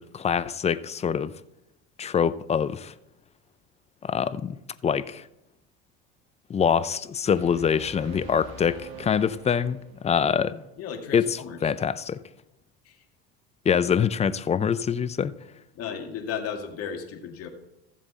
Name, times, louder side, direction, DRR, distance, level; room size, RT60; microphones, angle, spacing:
voice 1, 0.0-1.3 2.0-2.9 4.0-4.6 4.8-5.2 6.5-10.6 11.1-12.2 13.7-15.3, left 7 dB, 20° left, 0.5 m, -25 dB
sound 1, 7.3-10.2, right 2 dB, 80° right, 2.3 m, -44 dB
voice 2, 10.8-11.6 12.8-13.0 15.7-17.5, left 7 dB, 55° left, 2.1 m, -35 dB
14.5 x 7.4 x 4.1 m
supercardioid pair, 100°, 29 cm